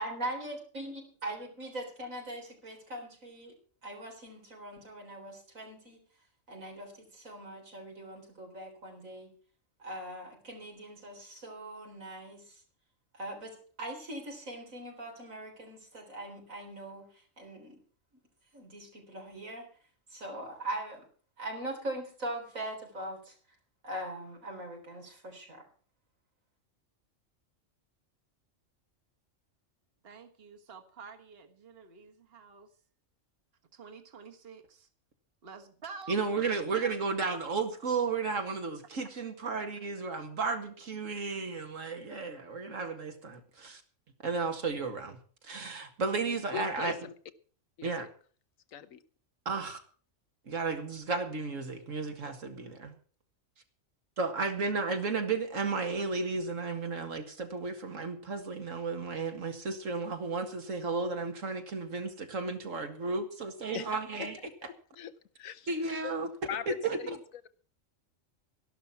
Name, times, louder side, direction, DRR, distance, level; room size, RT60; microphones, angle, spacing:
voice 1, 0.0-3.5 3.8-6.0 6.5-9.3 9.8-12.6 13.1-17.8 18.5-19.7 20.1-21.0 21.4-23.3 23.8-25.6, right 1 dB, 90° right, 4.3 m, -41 dB
voice 2, 30.0-32.7 33.7-34.9 35.4-36.4, right 5 dB, 50° right, 1.7 m, -49 dB
voice 3, 36.1-43.8 44.2-45.2 45.5-45.7 46.0-47.0 47.8-48.1 49.5-49.8 50.5-52.9 54.2-64.4 65.7-66.3 66.7-67.0, right 4 dB, 70° right, 2.2 m, -33 dB
voice 4, 46.5-47.1 47.8-48.1 48.7-49.0 63.7-63.9 64.4-65.1 65.4-65.7 66.0-66.1 66.5-67.2, left 10 dB, 90° left, 1.3 m, -40 dB
13.0 x 11.5 x 5.8 m
omnidirectional pair, 1.4 m